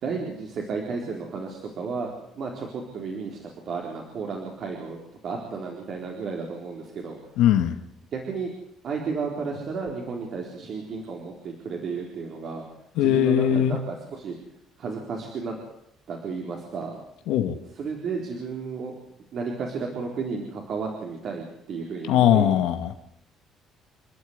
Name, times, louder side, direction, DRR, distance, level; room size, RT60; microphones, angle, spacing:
voice 1, 0.0-7.2 8.1-8.5 8.8-12.6 13.0-14.4 14.8-15.5 16.1-17.0 17.8-18.9 19.3-22.6, right 4 dB, 50° right, 0 dB, 4.1 m, -33 dB
voice 2, 7.4-7.8 13.0-13.8 17.3-17.6 22.1-22.9, left 10 dB, 90° left, 6 dB, 2.1 m, -20 dB
29.5 x 12.0 x 9.7 m, 0.77 s
cardioid pair, 150°, 0 cm